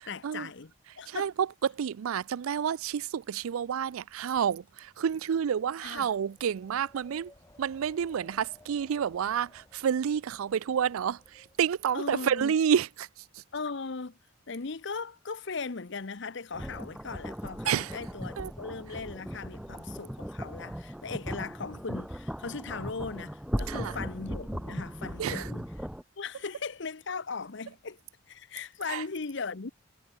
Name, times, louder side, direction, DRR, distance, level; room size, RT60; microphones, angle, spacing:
voice 1, 0.1-0.7 1.0-1.3 5.8-6.1 11.9-12.5 13.5-14.2 14.5-25.9 26.2-28.0 28.3-29.7, left 4 dB, 55° left, 0.8 m, -38 dB
voice 2, 1.1-7.3 7.6-13.1 13.3-13.4 17.7-17.9 18.4-18.5 23.7-23.9 25.2-25.5 28.9-29.0, right 8 dB, 85° right, 0.4 m, -29 dB
Wind, 2.8-12.9, left 1 dB, 15° left, 4.4 m, -60 dB
sound 1, 16.5-26.0, equal, 5° right, 0.6 m, -38 dB
head